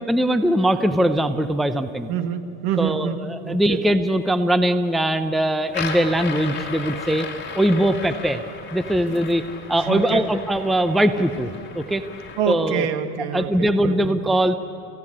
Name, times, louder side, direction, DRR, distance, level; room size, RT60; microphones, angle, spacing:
voice 1, 0.1-2.1 2.8-7.3 7.5-8.4 8.7-9.4 9.7-12.0 12.5-12.9 13.3-14.5, right 1 dB, ahead, 10 dB, 0.7 m, -21 dB
voice 2, 2.1-3.8 9.8-10.3 12.4-14.2, right 8 dB, 60° right, 8 dB, 1.9 m, -26 dB
sound 1, 5.7-12.4, left 5 dB, 25° left, 4.2 m, -35 dB
30.0 x 16.5 x 8.7 m, 2.7 s
supercardioid pair, 115°, 42 cm